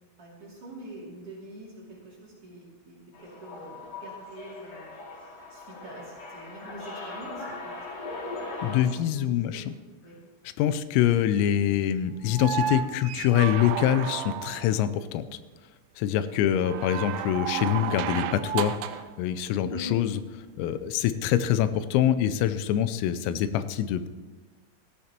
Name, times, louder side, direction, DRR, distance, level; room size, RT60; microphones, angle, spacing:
voice 1, 0.2-4.9 5.5-7.7 8.7-9.6 10.0-10.2 16.3-16.7 19.7-20.0, equal, 35° right, -6 dB, 2.6 m, -44 dB
sound 1, 3.1-8.8, left 3 dB, 50° left, 3.1 m, -39 dB
voice 2, 8.6-9.7 10.6-15.4 16.0-18.7 19.2-20.2 20.6-24.1, left 11 dB, 90° left, 13 dB, 3.3 m, -25 dB
sound 2, 12.3-14.8 16.6-19.1 20.8-20.9, right 10 dB, 85° right, 3.0 m, -32 dB
17.0 x 14.0 x 2.9 m, 1.3 s
omnidirectional pair, 5.9 m